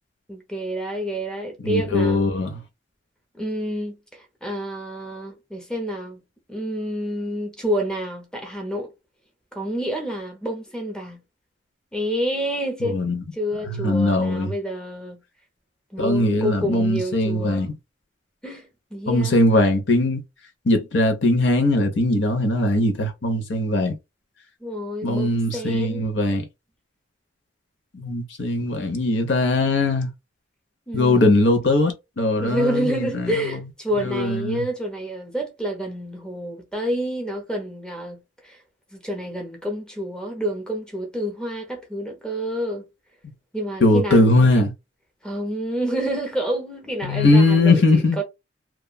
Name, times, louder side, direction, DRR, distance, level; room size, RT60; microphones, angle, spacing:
voice 1, 0.3-2.3 3.3-6.2 6.5-8.9 9.5-11.2 11.9-13.0 13.3-15.2 15.9-17.8 18.4-19.4 24.6-26.0 30.9-31.4 32.4-38.6 38.9-42.8 43.5-44.5 45.2-48.2, equal, 5° left, 0.7 m, -28 dB
voice 2, 1.6-2.6 12.8-13.2 13.7-14.5 16.0-17.7 19.1-20.2 20.7-23.9 25.0-26.5 27.9-30.1 30.9-33.6 34.0-34.7 43.8-44.7 47.0-48.2, left 2 dB, 80° left, 0.8 m, -20 dB
3.0 x 2.4 x 2.3 m
head